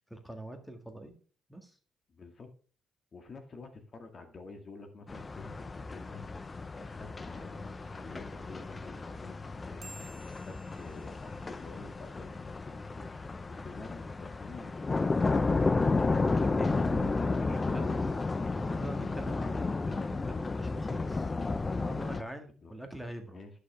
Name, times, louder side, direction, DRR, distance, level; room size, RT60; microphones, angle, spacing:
voice 1, 0.1-1.1 1.5-1.8 16.2-18.1 18.5-21.3 21.7-23.4, right 1 dB, ahead, 6 dB, 1.8 m, -44 dB
voice 2, 2.1-2.5 3.1-6.2 6.7-15.8 16.9-18.1 22.6-22.7 23.3-23.5, left 3 dB, 40° left, 6 dB, 1.9 m, -48 dB
sound 1, 5.1-22.2, left 3 dB, 25° left, 0.6 m, -32 dB
sound 2, 9.8-12.7, right 3 dB, 45° right, 2.5 m, -55 dB
11.0 x 6.6 x 3.4 m, 0.40 s
cardioid pair, 90°, 0 cm